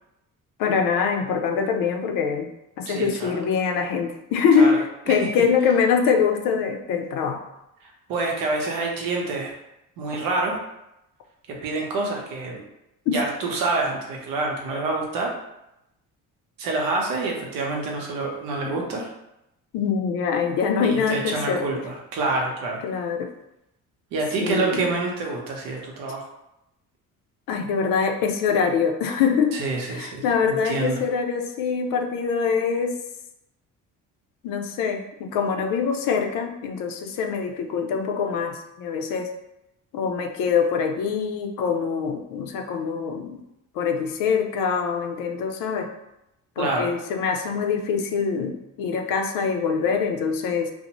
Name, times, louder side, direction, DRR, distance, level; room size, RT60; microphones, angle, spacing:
voice 1, 0.6-2.5 2.8-7.4 13.1-13.2 18.6-18.8 19.7-21.7 22.8-23.3 24.4-24.8 27.5-29.6 29.9-33.0 34.4-39.3 39.9-43.4 43.7-45.9 46.6-50.7, left 6 dB, 80° left, 5 dB, 0.5 m, -24 dB
voice 2, 2.9-3.3 4.6-4.8 5.1-5.3 7.8-9.5 10.0-10.6 11.5-12.6 13.1-15.3 16.6-19.1 20.8-22.8 24.1-26.3 29.5-31.0 46.6-46.9, right 3 dB, 85° right, 0 dB, 0.7 m, -27 dB
2.5 x 2.0 x 2.9 m, 0.87 s
cardioid pair, 105°, 33 cm